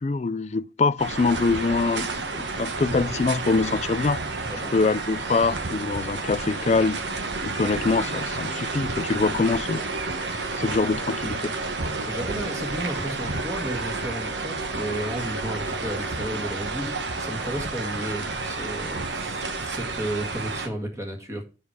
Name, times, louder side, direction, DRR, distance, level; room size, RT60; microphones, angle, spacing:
voice 1, 0.0-2.1 2.3-4.2 4.7-7.0 7.4-9.8 10.5-11.5, left 4 dB, 40° left, 0.3 m, -24 dB
sound 1, 1.0-20.7, right 3 dB, 85° right, 1.3 m, -30 dB
voice 2, 12.0-21.4, right 1 dB, 15° right, 1.7 m, -33 dB
7.4 x 6.3 x 4.6 m
head